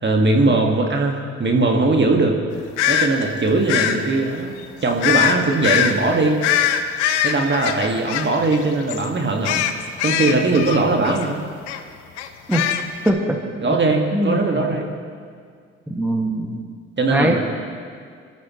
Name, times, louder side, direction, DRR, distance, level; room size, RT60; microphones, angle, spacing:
voice 1, 0.0-2.4 2.9-6.4 7.2-9.7 10.0-11.5 13.6-14.9 17.0-17.3, right 2 dB, 30° right, 1 dB, 2.1 m, -20 dB
sound 1, 2.8-3.1 3.7-4.0 5.0-5.4 5.6-5.9 6.4-8.6 8.9-9.1 9.4-11.3 11.7-11.8 12.2-13.1, left 10 dB, 80° left, 0.9 m, -21 dB
voice 2, 13.1-13.4 14.1-14.7 15.9-16.6 17.1-17.3, right 1 dB, 5° right, 1 dB, 2.1 m, -21 dB
24.5 x 13.5 x 3.2 m, 2.1 s
hypercardioid pair, 50°, 35 cm